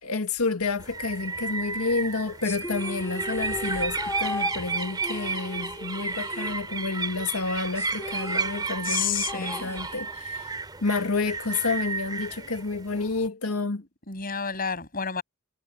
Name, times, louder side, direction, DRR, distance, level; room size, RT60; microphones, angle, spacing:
voice 1, 0.0-10.5 10.8-13.8, left 3 dB, 80° left, 1.8 m, -29 dB
sound 1, 0.8-13.3, right 4 dB, 20° right, 2.9 m, -33 dB
sound 2, 2.4-7.1 7.4-7.5 7.8-10.4, left 1 dB, 10° left, 1.9 m, -37 dB
voice 2, 8.8-9.8 14.1-15.2, left 7 dB, 40° left, 6.8 m, -30 dB
head